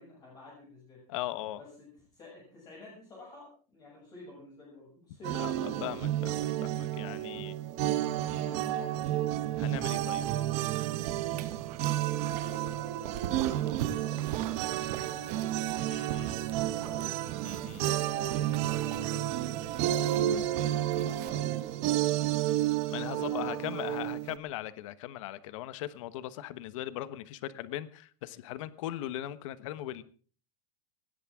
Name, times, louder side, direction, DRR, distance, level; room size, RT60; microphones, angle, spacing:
voice 1, 0.0-1.0 1.6-5.7 8.0-9.0 11.7-14.3 15.0-15.5 16.0-17.2 17.8-22.1 22.9-24.1, left 3 dB, 20° left, -3 dB, 7.2 m, -50 dB
voice 2, 1.1-1.6 5.3-7.5 9.6-10.3 15.9-16.3 17.4-17.8 22.9-30.0, left 14 dB, 55° left, 15 dB, 1.2 m, -39 dB
sound 1, 5.2-24.4, right 13 dB, 35° right, 1.2 m, -31 dB
Dog, 10.7-21.3, right 9 dB, 85° right, 2.1 m, -43 dB
20.5 x 17.5 x 3.7 m, 0.41 s
supercardioid pair, 170°, 20 cm